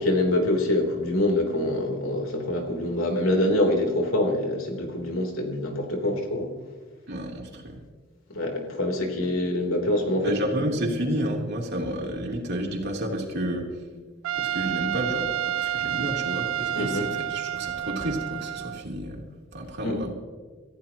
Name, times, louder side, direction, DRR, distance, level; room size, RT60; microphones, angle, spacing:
voice 1, 0.0-6.5 8.3-10.7 16.8-17.1 19.8-20.0, left 1 dB, 85° left, 2 dB, 3.6 m, -25 dB
voice 2, 7.1-7.8 10.2-13.7 14.4-19.2 19.5-20.1, right 1 dB, 55° right, -1 dB, 3.4 m, -30 dB
Trumpet, 14.2-18.8, right 11 dB, 85° right, 0.4 m, -29 dB
27.5 x 15.0 x 3.0 m, 1.4 s
head